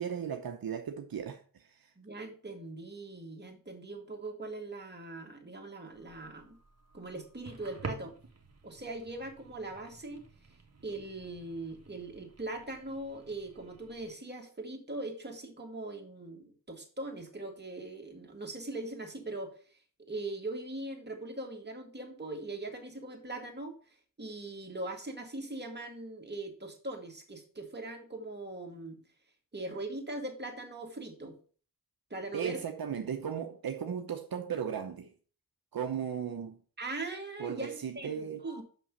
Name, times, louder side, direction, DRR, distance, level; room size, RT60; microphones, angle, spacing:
voice 1, 0.0-1.4 32.3-35.1 35.7-36.6 37.4-38.4, right 8 dB, 75° right, 0.9 m, -36 dB
voice 2, 2.0-6.6 6.9-8.1 8.6-10.2 10.8-19.5 20.1-23.7 24.2-29.0 29.5-31.4 32.1-32.6 36.8-38.6, right 2 dB, 30° right, 2.2 m, -41 dB
sound 1, 5.9-14.1, right 4 dB, 45° right, 1.4 m, -50 dB
6.2 x 5.9 x 5.3 m
wide cardioid pair, 80°, 36 cm